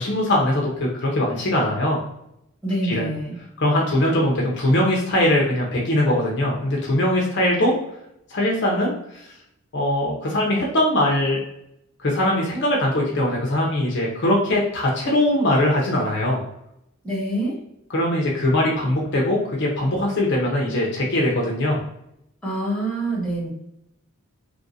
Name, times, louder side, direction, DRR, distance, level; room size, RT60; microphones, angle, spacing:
voice 1, 0.0-2.0 2.8-3.1 3.6-7.7 8.3-8.9 9.7-11.4 12.0-16.4 17.9-21.8, left 1 dB, 55° left, -2 dB, 0.6 m, -21 dB
voice 2, 2.6-3.3 17.0-17.6 22.4-23.5, right 1 dB, 5° left, -7 dB, 1.2 m, -26 dB
3.1 x 2.5 x 2.6 m, 0.80 s
head